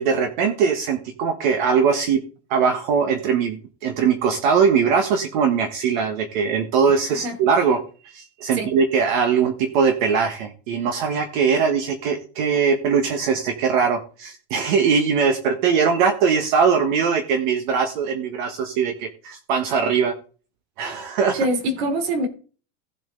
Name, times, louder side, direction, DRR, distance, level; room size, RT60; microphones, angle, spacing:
voice 1, 0.0-2.2 2.5-20.1 20.8-21.4, right 6 dB, 50° right, 1.5 m, -21 dB
voice 2, 21.3-22.3, right 1 dB, 80° right, 3.3 m, -24 dB
15.5 x 7.5 x 3.8 m
supercardioid pair, 175°, 31 cm